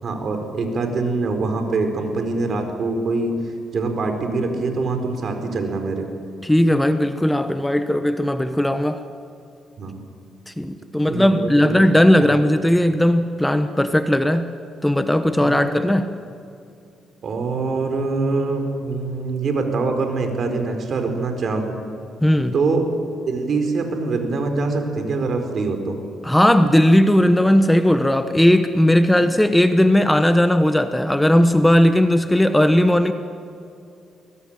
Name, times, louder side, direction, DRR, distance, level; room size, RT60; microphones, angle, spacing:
voice 1, 0.0-3.3 3.7-6.1 9.8-10.0 11.1-11.5 12.2-12.3 15.4-15.6 17.2-21.8 22.5-22.9 23.3-25.9, right 3 dB, 55° right, 5 dB, 4.5 m, -24 dB
voice 2, 6.4-9.0 10.5-14.5 14.8-16.1 22.2-22.5 26.2-33.1, left 1 dB, 5° left, 9 dB, 1.0 m, -17 dB
24.0 x 19.0 x 9.0 m, 2.6 s
cardioid pair, 90°, 0 cm